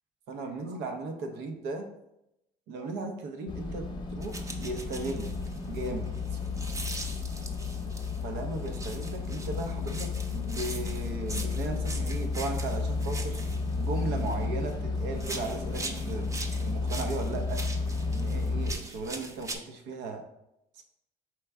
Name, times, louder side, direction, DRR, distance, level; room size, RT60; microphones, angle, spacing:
voice 1, 0.3-1.9 2.7-5.3 5.7-6.4 8.2-13.4 13.8-17.6 18.0-20.2 20.7-20.8, right 3 dB, 85° right, 5 dB, 0.7 m, -36 dB
sound 1, 3.5-18.7, left 4 dB, 25° left, 0.7 m, -32 dB
sound 2, 4.2-8.2 8.7-14.8 15.1-19.6, right 2 dB, 20° right, 0.5 m, -42 dB
4.5 x 3.4 x 3.4 m, 0.84 s
cardioid pair, 110°, 17 cm